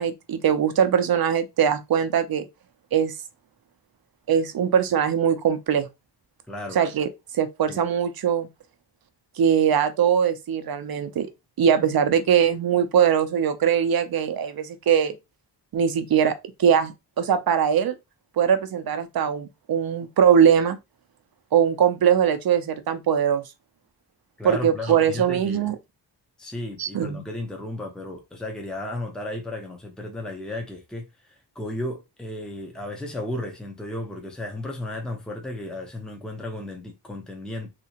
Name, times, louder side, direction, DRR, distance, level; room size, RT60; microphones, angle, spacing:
voice 1, 0.0-2.4 2.9-3.2 4.3-5.9 6.7-7.1 7.3-8.5 9.4-11.3 11.6-15.1 15.7-17.9 18.4-20.8 21.5-23.4 24.4-25.8 26.8-27.2, right 8 dB, 60° right, 0.6 m, -21 dB
voice 2, 6.5-6.8 7.7-7.8 24.4-25.7 26.4-37.7, left 1 dB, ahead, 0.7 m, -34 dB
3.3 x 2.9 x 2.8 m
wide cardioid pair, 100°, 41 cm